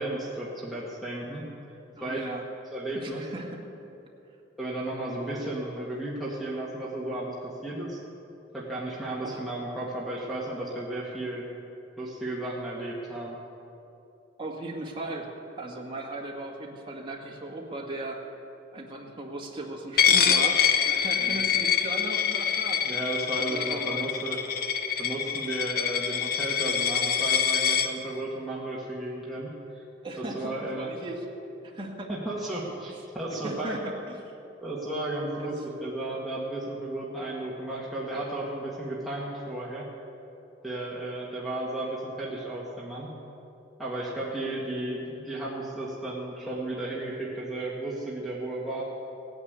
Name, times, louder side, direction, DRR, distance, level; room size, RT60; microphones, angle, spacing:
voice 1, 0.0-1.5 2.0-2.3 2.7-3.3 4.6-8.0 8.5-11.4 12.0-13.4 21.2-21.4 22.8-24.4 25.0-29.8 30.2-30.9 32.1-34.0 34.6-39.9 40.6-43.1 43.8-48.8, right 1 dB, ahead, -7 dB, 1.9 m, -34 dB
voice 2, 1.9-2.4 2.9-3.6 9.2-9.4 14.4-15.3 15.6-18.2 18.7-23.0 23.4-24.1 30.0-31.2 31.6-32.1 33.4-34.2 35.4-35.5, right 2 dB, 25° right, -1 dB, 1.9 m, -37 dB
Coin (dropping), 20.0-27.9, left 8 dB, 55° left, 0.8 m, -25 dB
17.0 x 9.8 x 8.2 m, 2.8 s
head